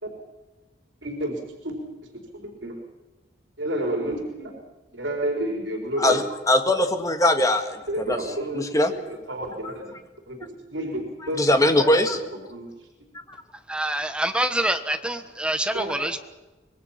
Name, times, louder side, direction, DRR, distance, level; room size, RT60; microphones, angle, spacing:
voice 1, 1.0-1.8 2.1-2.7 3.6-4.5 4.9-6.3 7.9-8.7 9.3-9.9 10.3-11.4 11.8-11.9 12.5-12.7 15.7-16.0, right 1 dB, 75° right, 1 dB, 4.2 m, -30 dB
voice 2, 6.0-8.9 9.6-9.7 11.3-12.2 13.3-13.4, left 1 dB, 20° left, 6 dB, 1.8 m, -22 dB
voice 3, 13.7-16.2, right 1 dB, 5° right, 8 dB, 1.2 m, -26 dB
25.0 x 21.5 x 5.8 m, 1.2 s
head